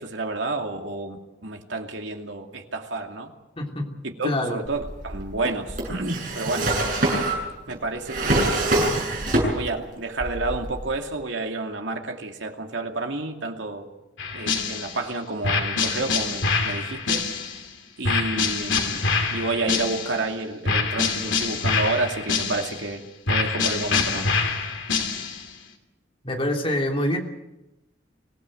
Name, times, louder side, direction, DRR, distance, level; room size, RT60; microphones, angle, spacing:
voice 1, 0.0-3.3 4.2-6.7 7.7-8.8 9.5-13.9 14.3-17.2 18.0-23.0 23.3-24.3, right 2 dB, 75° right, 3 dB, 2.6 m, -30 dB
voice 2, 3.6-3.9 4.2-4.6 26.2-27.2, left 1 dB, 30° left, 2 dB, 3.2 m, -25 dB
Drawer open or close, 4.6-9.8 10.1-11.0, right 1 dB, 45° right, 7.7 m, -25 dB
sound 1, 14.2-15.0 15.4-17.7 18.0-20.3 20.6-22.9 23.3-25.5, left 4 dB, 80° left, 3.0 m, -25 dB
25.0 x 17.0 x 7.8 m, 0.97 s
head